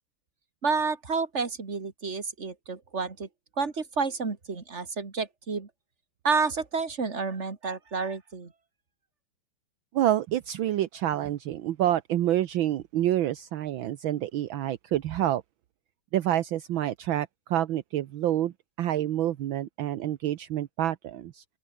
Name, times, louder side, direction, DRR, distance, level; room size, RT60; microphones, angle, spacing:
voice 1, 0.6-3.3 3.6-5.7 6.2-8.5, right 4 dB, 35° right, 2.8 m, -30 dB
voice 2, 9.9-15.4 16.1-21.4, right 12 dB, 70° right, 1.6 m, -28 dB
open air
omnidirectional pair, 2.3 m